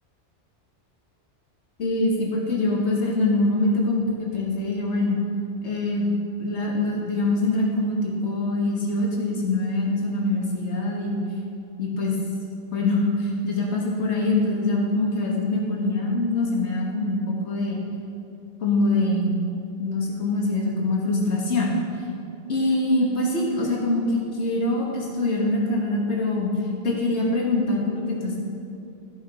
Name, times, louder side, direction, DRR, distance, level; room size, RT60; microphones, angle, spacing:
voice 1, 1.8-5.2 5.6-6.1 6.4-11.2 11.8-12.2 12.7-17.8 18.6-19.4 19.8-21.8 22.5-26.5 26.8-28.4, left 2 dB, 75° left, -3 dB, 1.8 m, -24 dB
13.0 x 5.8 x 4.9 m, 2.6 s
omnidirectional pair, 1.2 m